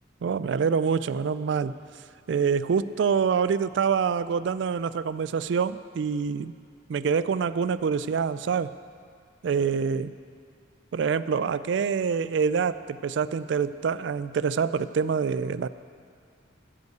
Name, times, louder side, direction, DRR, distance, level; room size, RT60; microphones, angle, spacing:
voice 1, 0.2-1.8 2.3-6.5 6.9-8.7 9.4-10.1 10.9-15.7, right 6 dB, 65° right, 15 dB, 0.3 m, -26 dB
15.0 x 5.4 x 8.0 m, 2.3 s
head